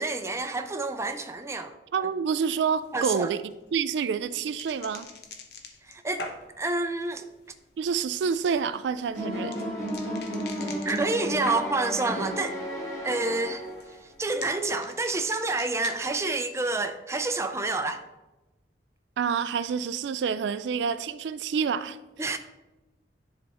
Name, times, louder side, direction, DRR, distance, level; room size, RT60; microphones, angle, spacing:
voice 1, 0.0-1.7 2.9-3.3 5.8-6.2 6.6-7.3 10.8-12.6 13.0-13.6 13.9-18.0 22.2-22.4, right 3 dB, 15° right, 0.4 m, -28 dB
voice 2, 1.9-3.4 3.7-5.1 7.8-9.6 19.2-22.0, right 6 dB, 80° right, 0.3 m, -28 dB
sound 1, 2.7-12.0 12.3-12.9 13.2-16.6, left 3 dB, 60° left, 0.8 m, -44 dB
sound 2, 9.1-14.0, equal, 15° left, 2.1 m, -33 dB
10.5 x 3.4 x 4.2 m
head